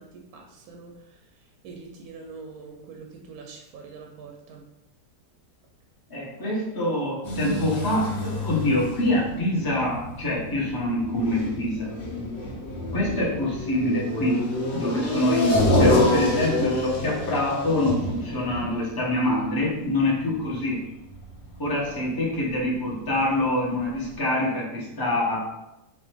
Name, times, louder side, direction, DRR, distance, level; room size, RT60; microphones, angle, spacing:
voice 1, 0.0-4.7, right 4 dB, 75° right, 2 dB, 1.0 m, -44 dB
voice 2, 6.1-11.9 12.9-14.4 14.7-20.8 21.6-25.5, left 1 dB, 20° left, -5 dB, 0.7 m, -25 dB
sound 1, 7.2-22.9 23.2-23.3 23.8-23.9 24.1-24.2, left 1 dB, 50° left, 0.9 m, -28 dB
4.1 x 2.5 x 3.3 m, 0.89 s
omnidirectional pair, 1.7 m